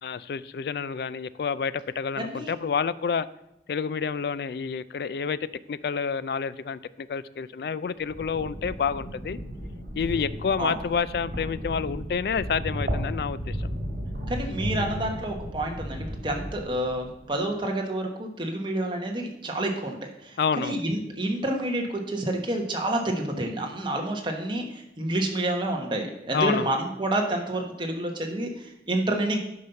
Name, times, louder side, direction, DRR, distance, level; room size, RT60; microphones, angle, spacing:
voice 1, 0.0-3.3 3.7-9.4 9.9-13.7 20.4-20.8 23.9-24.0 26.3-26.7, left 6 dB, 60° left, 17 dB, 0.3 m, -29 dB
voice 2, 2.2-2.5 10.6-10.7 14.3-20.0 20.2-29.4, right 1 dB, 25° right, 2 dB, 1.3 m, -29 dB
sound 1, 8.0-17.2, equal, 55° right, 2.6 m, -34 dB
9.5 x 5.5 x 5.6 m, 0.86 s
head